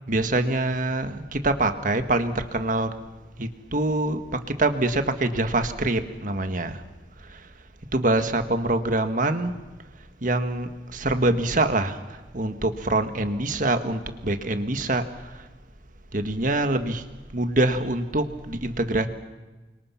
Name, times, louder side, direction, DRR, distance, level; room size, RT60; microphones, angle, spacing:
voice 1, 0.1-2.9 3.4-6.8 7.3-7.4 7.9-9.5 10.2-12.0 12.3-15.3 16.1-17.0 17.3-19.1, right 2 dB, 50° right, 8 dB, 1.7 m, -25 dB
29.0 x 25.0 x 5.8 m, 1.2 s
head